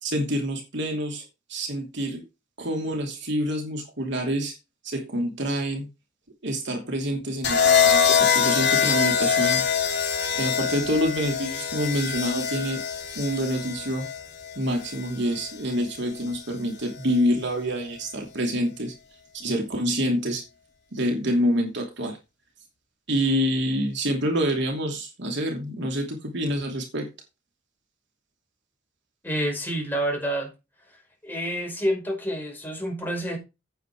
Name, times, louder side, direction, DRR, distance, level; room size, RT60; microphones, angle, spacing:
voice 1, 0.0-1.2 1.5-2.2 2.6-4.5 4.8-5.9 6.4-9.6 10.3-12.8 13.1-14.1 14.5-18.9 19.3-20.4 20.9-22.2 23.1-27.1, equal, 65° right, 2.8 m, -27 dB
sound 1, 7.4-15.6 16.8-17.2, left 7 dB, 60° left, 4.1 m, -24 dB
voice 2, 29.2-30.5 31.2-33.4, equal, 10° left, 5.4 m, -28 dB
9.4 x 8.2 x 4.8 m
head